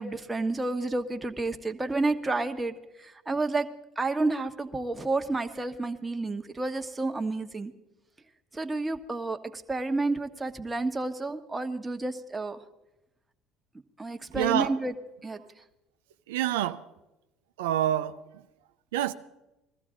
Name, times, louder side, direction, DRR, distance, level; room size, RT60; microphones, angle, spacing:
voice 1, 0.0-3.7 4.0-7.7 8.5-12.6 14.0-14.9 15.2-15.4, right 2 dB, 15° right, 1.3 m, -30 dB
voice 2, 14.3-14.7 16.3-16.8 17.6-18.2 18.9-19.1, right 12 dB, 80° right, 0.6 m, -27 dB
21.0 x 14.5 x 3.8 m
hypercardioid pair, 70°, 0 cm